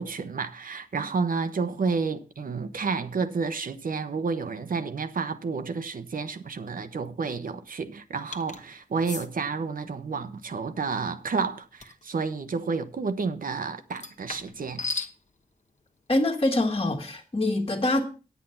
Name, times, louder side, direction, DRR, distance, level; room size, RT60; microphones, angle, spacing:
voice 1, 0.0-14.8, right 4 dB, 75° right, 0.9 m, -30 dB
sound 1, 8.3-8.6 9.0-9.3 11.8-12.0 13.9-15.1, left 3 dB, 55° left, 1.1 m, -35 dB
voice 2, 16.1-18.0, left 2 dB, 35° left, 1.6 m, -24 dB
9.2 x 8.3 x 5.6 m
wide cardioid pair, 115°, 15 cm